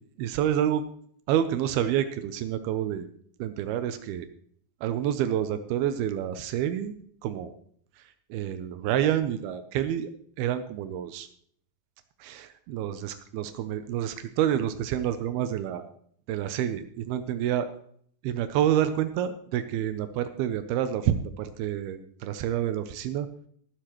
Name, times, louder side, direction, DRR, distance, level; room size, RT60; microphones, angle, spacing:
voice 1, 0.2-0.8 1.3-3.1 3.4-4.3 4.8-6.9 7.2-7.5 8.0-10.1 10.4-11.3 12.2-15.9 16.3-17.7 18.2-23.3, right 10 dB, 90° right, 9 dB, 2.2 m, -28 dB
14.5 x 13.5 x 3.0 m, 0.62 s
omnidirectional pair, 5.4 m